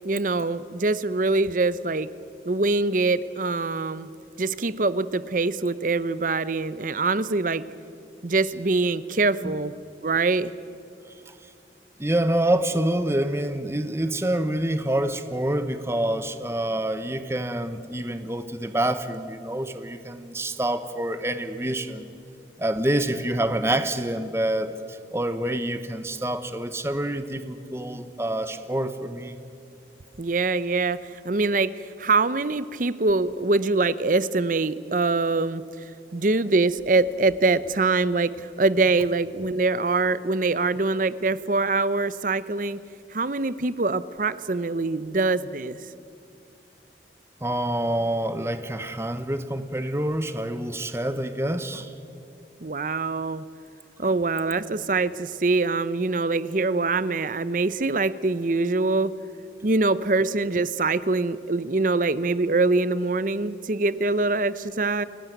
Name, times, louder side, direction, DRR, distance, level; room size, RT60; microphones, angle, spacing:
voice 1, 0.0-2.1 2.4-4.1 4.4-7.7 8.2-9.7 10.0-10.5 30.2-35.6 36.1-42.8 43.1-45.8 52.6-53.4 54.0-59.2 59.6-65.0, right 3 dB, 50° right, 16 dB, 0.7 m, -24 dB
voice 2, 12.0-22.1 22.6-29.4 47.4-51.9 54.0-54.1, right 1 dB, 15° right, 10 dB, 1.0 m, -27 dB
28.5 x 16.0 x 9.3 m, 2.5 s
head